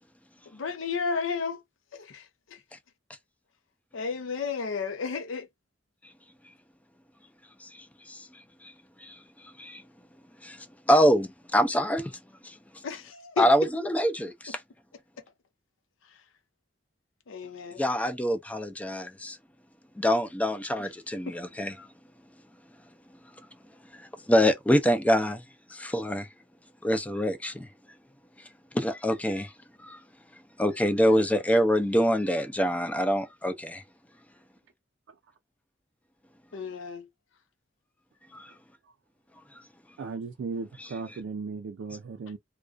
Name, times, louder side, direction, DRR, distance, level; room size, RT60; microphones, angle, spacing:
voice 1, 0.5-1.6 1.9-2.2 3.9-5.5 12.8-13.5 17.3-17.8 36.5-37.1, left 5 dB, 85° left, 0.5 m, -32 dB
voice 2, 7.6-8.7 9.0-9.9 10.4-12.8 13.4-14.6 17.8-19.4 19.9-21.9 23.1-23.5 23.8-26.3 26.8-27.7 28.4-29.5 29.8-30.0 30.3-33.8 38.3-38.6 39.5-39.7 40.8-40.9, equal, 10° left, 0.3 m, -26 dB
voice 3, 40.0-42.4, right 4 dB, 70° right, 0.3 m, -36 dB
2.3 x 2.2 x 2.4 m
head